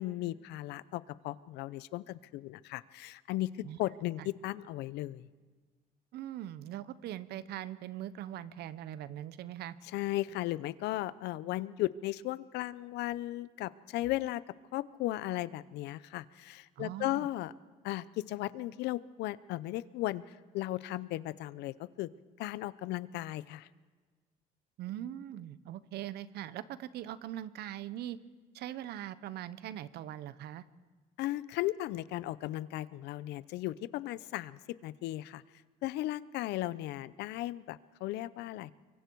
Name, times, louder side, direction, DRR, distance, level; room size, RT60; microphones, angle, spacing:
voice 1, 0.0-3.5 3.8-5.3 9.9-14.4 14.7-17.5 17.8-22.1 22.4-23.7 31.2-35.4 35.8-38.7, left 16 dB, 85° left, 18 dB, 0.7 m, -36 dB
voice 2, 6.1-9.8 16.8-17.3 24.8-28.2 28.5-30.6, right 12 dB, 75° right, 16 dB, 0.9 m, -41 dB
24.5 x 24.0 x 4.7 m, 1.4 s
cardioid pair, 110°, 17 cm